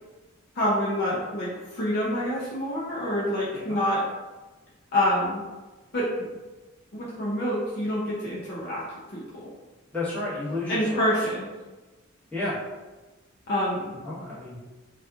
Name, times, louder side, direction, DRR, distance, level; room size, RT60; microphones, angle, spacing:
voice 1, 0.6-4.0 4.9-5.4 5.9-6.1 6.9-8.8 9.1-9.5 10.7-11.5 13.5-13.9, equal, 45° left, -7 dB, 0.5 m, -27 dB
voice 2, 9.9-11.0 12.3-12.6 13.9-14.6, left 2 dB, 5° left, -12 dB, 1.1 m, -31 dB
2.8 x 2.3 x 2.4 m, 1.2 s
head